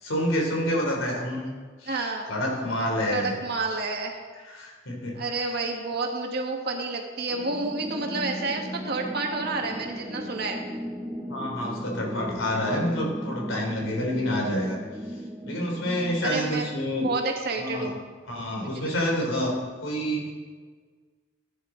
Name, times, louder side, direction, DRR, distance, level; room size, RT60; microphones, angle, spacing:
voice 1, 0.0-1.5 1.8-3.3 4.5-5.2 11.3-14.8 15.4-17.1 17.6-17.9 18.3-20.3, equal, 90° left, 0 dB, 3.3 m, -28 dB
voice 2, 1.9-2.3 3.1-4.2 5.1-10.6 16.2-16.7 17.0-18.0 18.5-18.9, right 3 dB, 55° right, 2 dB, 1.6 m, -30 dB
sound 1, 7.3-16.5, equal, 5° right, 0.9 m, -36 dB
15.0 x 10.0 x 3.9 m, 1.5 s
head